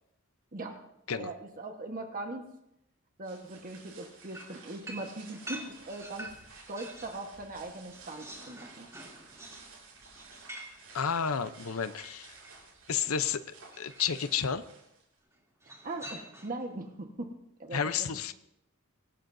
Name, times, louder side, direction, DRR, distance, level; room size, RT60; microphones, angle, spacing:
voice 1, 1.2-2.5 3.2-8.9 15.8-17.3 17.6-17.8, right 2 dB, 40° right, 3 dB, 1.4 m, -40 dB
sound 1, 3.2-15.2, right 4 dB, 85° right, 7.7 m, -54 dB
sound 2, 4.3-7.2 7.6-12.7 13.7-14.3 15.6-16.7, right 1 dB, 15° right, 2.9 m, -47 dB
voice 2, 10.9-12.3 12.9-13.4 13.8-14.6 17.7-18.3, left 7 dB, 85° left, 12 dB, 0.7 m, -31 dB
24.5 x 18.0 x 2.7 m, 0.82 s
head